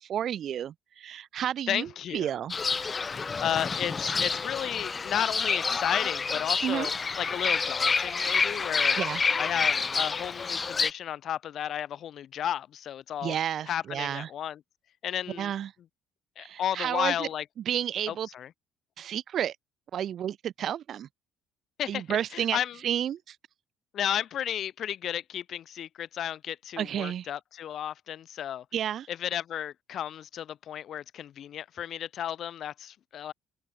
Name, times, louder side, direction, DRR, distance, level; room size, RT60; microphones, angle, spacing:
voice 1, 0.0-1.9 2.1-2.9 6.6-6.9 9.0-9.2 13.2-14.3 15.4-15.7 16.4-17.3 17.7-18.3 19.0-19.6 19.9-21.1 21.9-22.6 22.8-23.4 26.8-27.3 28.7-29.1, right 10 dB, 60° right, 0.6 m, -31 dB
voice 2, 1.7-2.3 3.4-6.9 7.2-9.0 9.4-13.4 13.7-14.6 15.0-15.5 16.4-17.4 18.1-18.5 21.8-22.8 23.9-28.6 29.1-33.3, left 10 dB, 60° left, 0.9 m, -33 dB
Fowl / Bird, 2.5-10.9, left 4 dB, 30° left, 1.2 m, -28 dB
open air
supercardioid pair, 70°, 0 cm